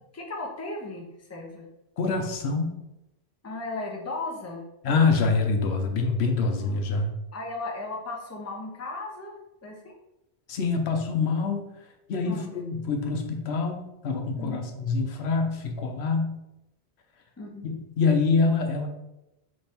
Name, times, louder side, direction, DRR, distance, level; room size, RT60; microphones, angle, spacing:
voice 1, 0.1-1.7 3.4-4.6 6.6-6.7 7.3-9.9 12.2-12.5 14.4-14.6 17.4-17.7, left 2 dB, 15° left, 0 dB, 0.6 m, -36 dB
voice 2, 2.0-2.8 4.8-7.1 10.5-11.6 12.1-16.4 17.6-18.9, left 4 dB, 80° left, 4 dB, 0.9 m, -25 dB
4.2 x 3.3 x 3.4 m, 0.90 s
omnidirectional pair, 1.1 m